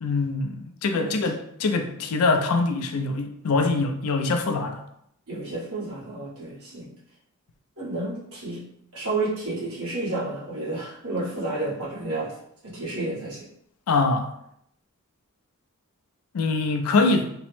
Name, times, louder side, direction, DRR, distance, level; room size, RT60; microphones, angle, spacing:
voice 1, 0.0-4.8 13.9-14.3 16.3-17.3, left 3 dB, 80° left, 5 dB, 0.4 m, -24 dB
voice 2, 5.3-6.9 7.8-8.6 8.9-12.3 12.6-13.5, right 2 dB, 80° right, -8 dB, 1.3 m, -31 dB
3.0 x 2.0 x 3.1 m, 0.73 s
head